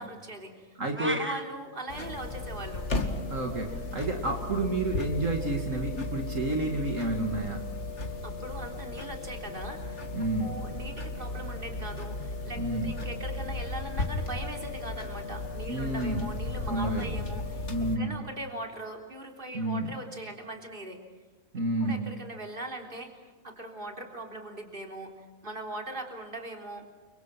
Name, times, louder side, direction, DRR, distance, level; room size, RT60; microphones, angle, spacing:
voice 1, 0.0-0.7 1.0-2.9 8.0-10.1 10.4-17.7 18.0-21.0 21.8-23.1 23.4-26.9, right 1 dB, 40° right, 2 dB, 3.7 m, -40 dB
voice 2, 0.8-1.2 3.3-7.6 10.1-10.5 12.5-12.9 15.7-16.3 16.7-17.2 17.7-18.2 19.5-19.9 21.5-22.1, right 2 dB, 70° right, 2 dB, 2.9 m, -30 dB
sound 1, 0.9-1.4, right 1 dB, 10° right, 1.7 m, -33 dB
sound 2, 1.9-18.0, left 2 dB, 60° left, 2.5 m, -35 dB
30.0 x 25.5 x 6.0 m, 1.3 s
omnidirectional pair, 1.4 m